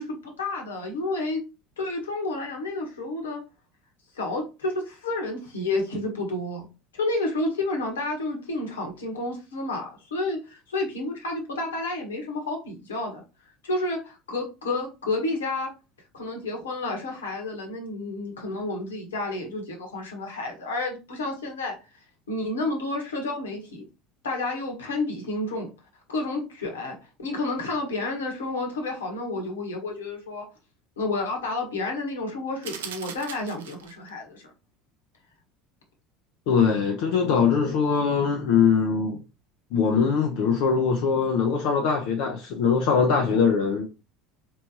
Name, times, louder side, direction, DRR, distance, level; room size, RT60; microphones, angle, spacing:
voice 1, 0.0-1.4 1.8-3.4 4.1-6.7 6.9-13.2 13.6-15.7 16.1-21.7 22.3-23.8 24.2-25.7 26.1-30.4 31.0-34.5, left 2 dB, 75° left, 1.3 m, -30 dB
sound 1, 32.6-34.1, right 8 dB, 70° right, 0.5 m, -39 dB
voice 2, 36.5-39.2 39.7-43.8, left 6 dB, 55° left, 0.6 m, -22 dB
4.3 x 3.1 x 2.8 m
figure-of-eight pair, 70°, 0 cm